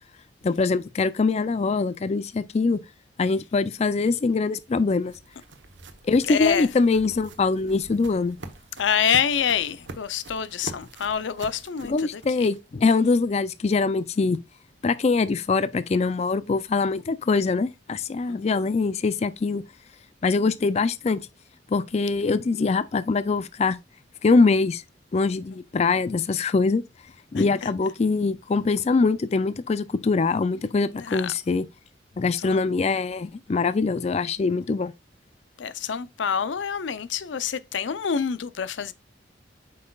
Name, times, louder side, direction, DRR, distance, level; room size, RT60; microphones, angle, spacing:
voice 1, 0.4-2.8 3.2-5.1 6.0-8.4 11.9-14.4 14.8-19.6 20.2-21.2 21.7-23.8 24.2-24.8 25.1-26.8 27.3-31.7 32.2-34.9, left 4 dB, 35° left, 0.4 m, -23 dB
sound 1, 4.3-12.8, right 2 dB, 85° right, 1.0 m, -45 dB
voice 2, 6.2-6.7 8.8-12.5 18.3-18.6 27.3-27.7 30.9-31.3 32.3-32.6 35.6-38.9, left 7 dB, 90° left, 0.5 m, -27 dB
7.8 x 5.4 x 2.3 m
head